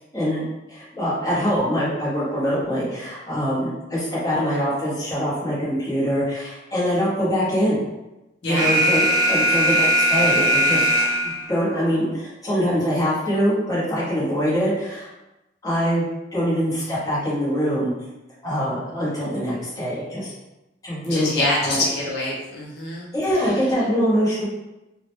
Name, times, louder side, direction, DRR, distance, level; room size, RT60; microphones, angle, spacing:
voice 1, 0.1-0.4 0.7-7.9 8.4-10.9 11.2-15.1 15.6-17.9 18.4-20.3 20.8-21.8 23.1-24.4, equal, 20° left, -9 dB, 0.9 m, -23 dB
voice 2, 8.4-8.8 9.4-9.6 21.0-23.1 23.3-23.6, left 1 dB, 70° left, -3 dB, 0.5 m, -26 dB
Alarm, 8.5-11.5, equal, 25° right, 0.4 m, -19 dB
2.3 x 2.0 x 2.9 m, 0.99 s
head